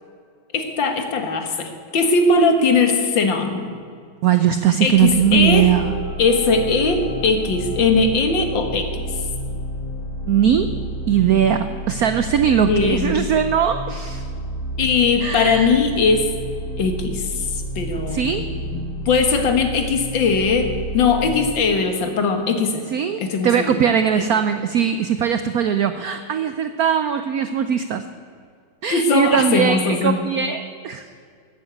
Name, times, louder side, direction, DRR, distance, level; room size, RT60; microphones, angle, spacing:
voice 1, 0.5-3.8 4.8-5.7 6.2-9.0 12.7-13.2 14.8-16.3 16.8-17.5 17.8-22.8 23.2-23.7 28.9-30.2, left 4 dB, 65° left, 6 dB, 2.0 m, -20 dB
voice 2, 4.2-5.9 10.3-10.7 11.1-14.2 15.2-15.8 18.1-18.5 22.9-28.0 28.8-31.0, right 8 dB, 90° right, 10 dB, 0.8 m, -20 dB
sound 1, 4.9-21.3, right 1 dB, 90° left, 3.9 m, -30 dB
13.5 x 9.0 x 8.6 m, 2.2 s
omnidirectional pair, 2.3 m